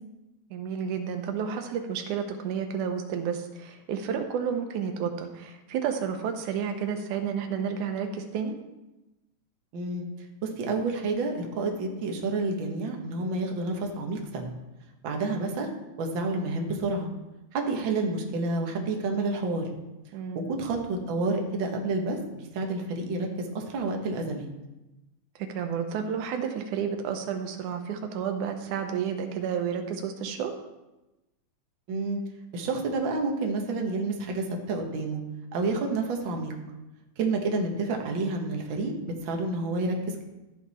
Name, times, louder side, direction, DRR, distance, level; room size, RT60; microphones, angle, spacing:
voice 1, 0.5-8.6 20.1-20.4 25.4-30.5, right 7 dB, 85° right, 6 dB, 2.4 m, -31 dB
voice 2, 9.7-10.1 10.4-14.5 15.0-15.7 16.0-17.1 17.5-19.7 20.4-24.5 31.9-32.2 32.5-35.2 35.5-36.5 37.2-40.2, right 3 dB, 50° right, 1 dB, 1.8 m, -29 dB
12.5 x 8.5 x 4.2 m, 1.0 s
omnidirectional pair, 3.4 m